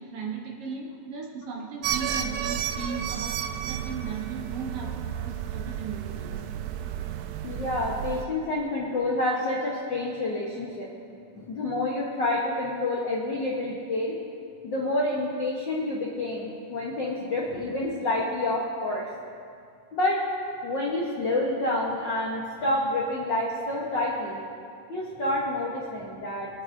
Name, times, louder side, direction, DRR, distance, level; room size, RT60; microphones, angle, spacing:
voice 1, 0.0-6.4, right 5 dB, 60° right, -2 dB, 1.7 m, -37 dB
sound 1, 1.8-8.3, right 9 dB, 85° right, 1.7 m, -32 dB
voice 2, 7.4-10.9 11.3-14.2 14.6-19.1 19.9-20.3 20.6-24.4 24.9-26.6, left 2 dB, 65° left, -3 dB, 1.1 m, -28 dB
24.0 x 8.8 x 2.7 m, 2.4 s
omnidirectional pair, 3.8 m